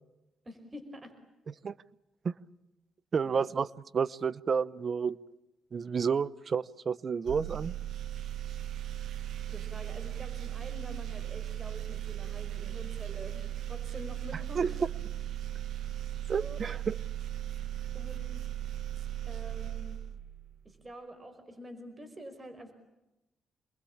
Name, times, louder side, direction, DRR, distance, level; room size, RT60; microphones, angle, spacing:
voice 1, 0.5-1.1 3.2-3.4 9.5-14.8 16.3-16.6 17.9-18.5 19.3-20.0 20.7-22.7, right 1 dB, 25° right, 9 dB, 5.3 m, -46 dB
voice 2, 3.1-3.7 3.9-5.2 5.7-7.8 14.6-14.7 16.3-17.0, right 6 dB, 45° right, 19 dB, 0.9 m, -30 dB
sound 1, 7.2-20.6, right 12 dB, 75° right, 1.2 m, -37 dB
28.5 x 21.5 x 8.7 m, 0.96 s
cardioid pair, 80°, 0 cm